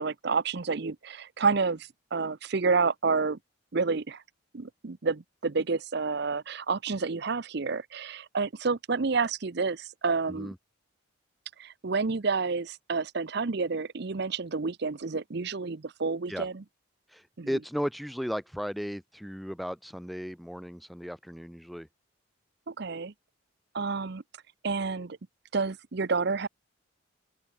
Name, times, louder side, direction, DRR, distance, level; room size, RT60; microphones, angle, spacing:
voice 1, 0.0-3.4 3.7-4.2 4.5-10.5 11.6-16.6 17.4-17.5 22.7-23.1 23.7-24.2 24.6-25.2 25.5-26.5, right 4 dB, 55° right, 0.7 m, -29 dB
voice 2, 17.1-21.9, equal, ahead, 1.4 m, -35 dB
open air
head